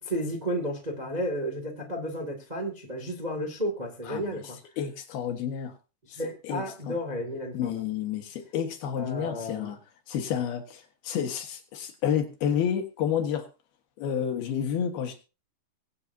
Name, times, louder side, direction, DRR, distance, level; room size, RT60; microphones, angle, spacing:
voice 1, 0.0-4.6 6.0-7.8 9.0-9.7, equal, 25° right, 0.8 m, -32 dB
voice 2, 4.8-5.7 6.4-7.0 7.5-9.8 10.1-13.5 14.0-15.2, left 8 dB, 65° left, 3.0 m, -30 dB
23.5 x 8.4 x 2.8 m
omnidirectional pair, 5.1 m